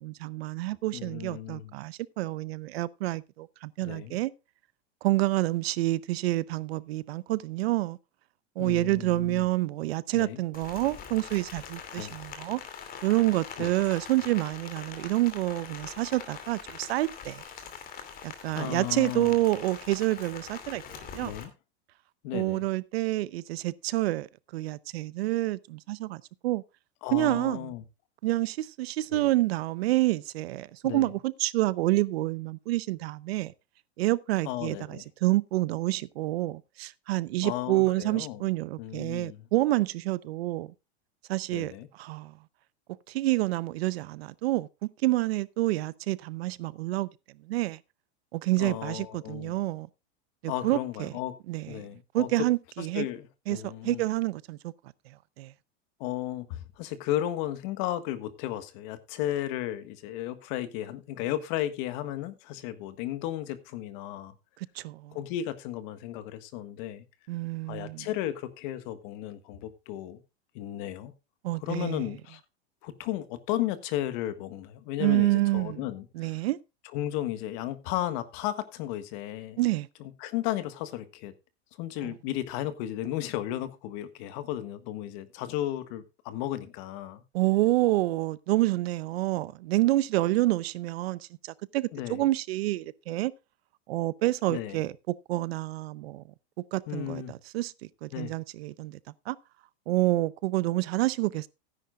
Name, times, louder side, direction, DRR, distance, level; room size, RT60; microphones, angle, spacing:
voice 1, 0.0-4.3 5.0-8.0 8.6-12.6 13.0-17.4 18.2-20.8 21.1-21.3 22.3-24.3 24.5-26.6 27.1-27.7 28.2-33.5 34.0-40.7 41.3-42.3 43.1-47.1 47.5-47.8 48.3-49.9 50.4-51.1 51.5-51.8 52.1-53.1 53.5-54.7 55.4-55.5 64.8-65.2 67.3-68.1 71.4-72.1 75.0-75.8 76.2-76.6 79.6-79.9 82.0-82.1 87.3-93.3 93.9-94.9 95.3-96.2 96.7-97.7 98.0-99.0 99.3-99.4 99.9-101.5, right 18 dB, 70° right, 0.8 m, -28 dB
voice 2, 0.9-1.7 3.8-4.2 8.6-9.5 10.1-10.4 11.9-12.2 13.6-13.7 18.5-19.3 21.2-21.5 22.2-22.6 27.0-27.8 29.1-29.3 30.8-31.1 34.4-35.0 37.4-38.5 38.8-39.5 41.5-41.9 48.6-49.5 50.5-51.4 51.7-52.5 52.8-54.0 56.0-64.3 65.1-67.0 67.7-70.2 70.5-71.1 71.6-72.4 72.8-76.4 76.9-79.6 80.0-81.3 81.8-87.2 91.9-92.3 94.5-94.8 96.9-97.3 98.1-98.3, left 13 dB, 50° left, 1.5 m, -34 dB
Rain, 10.5-21.4, left 7 dB, 25° left, 2.6 m, -43 dB
16.5 x 10.0 x 2.4 m
supercardioid pair, 150°, 32 cm